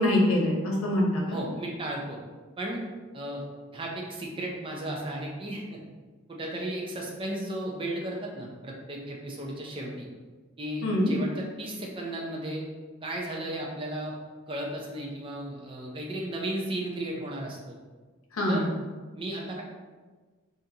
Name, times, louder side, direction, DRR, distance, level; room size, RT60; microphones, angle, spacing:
voice 1, 0.0-1.4 10.8-11.1 18.3-18.7, left 1 dB, 85° left, -2 dB, 0.8 m, -24 dB
voice 2, 1.3-2.2 2.6-2.8 3.1-3.4 3.7-5.8 6.3-10.1 10.6-12.6 13.0-14.1 14.5-17.6 18.5-18.7 19.1-19.6, right 1 dB, 25° right, -2 dB, 0.5 m, -34 dB
3.8 x 2.6 x 2.8 m, 1.4 s
head